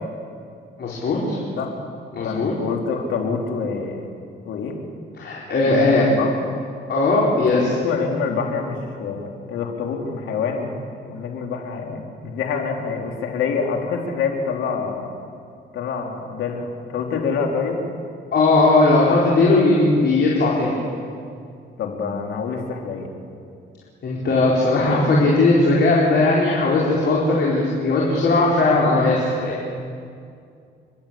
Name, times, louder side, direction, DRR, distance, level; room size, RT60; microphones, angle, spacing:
voice 1, 0.8-1.4 2.1-2.5 5.2-6.1 6.9-7.7 18.3-20.8 24.0-29.7, left 2 dB, 60° left, -4 dB, 4.5 m, -18 dB
voice 2, 2.2-4.1 4.5-4.8 5.6-6.3 7.4-10.8 11.1-15.1 15.7-17.8 21.8-23.1, left 5 dB, 80° left, 1 dB, 3.4 m, -26 dB
29.5 x 12.5 x 8.5 m, 2.3 s
cardioid pair, 90°, 20 cm